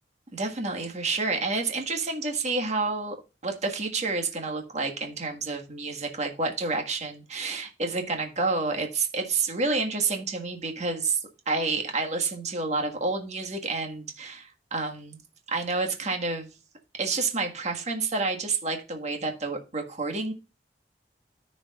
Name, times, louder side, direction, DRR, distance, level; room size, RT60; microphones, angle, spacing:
voice 1, 0.3-3.2 3.4-11.2 11.5-15.2 15.5-16.5 16.9-20.3, right 3 dB, 40° right, 1.7 m, -29 dB
14.0 x 5.1 x 2.4 m
head